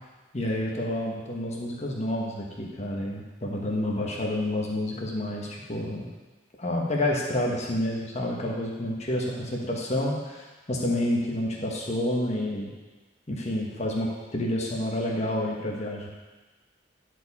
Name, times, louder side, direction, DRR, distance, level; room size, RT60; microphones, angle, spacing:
voice 1, 0.3-6.1 6.6-12.7 13.3-16.1, left 1 dB, 40° left, -2 dB, 1.3 m, -29 dB
10.0 x 4.8 x 4.2 m, 1.2 s
head